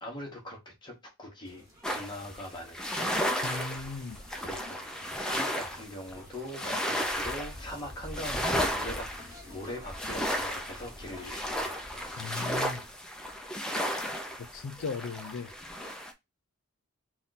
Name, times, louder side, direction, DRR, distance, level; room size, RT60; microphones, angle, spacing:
voice 1, 0.0-3.1 4.4-9.1 9.5-11.8, left 1 dB, 20° left, 1.1 m, -42 dB
sound 1, 1.4-12.9, left 1 dB, 15° right, 1.5 m, -53 dB
sound 2, 1.8-16.1, equal, 5° left, 0.4 m, -34 dB
voice 2, 3.4-4.2 12.2-12.8 14.4-15.5, left 4 dB, 65° left, 0.4 m, -37 dB
3.7 x 2.4 x 4.0 m
head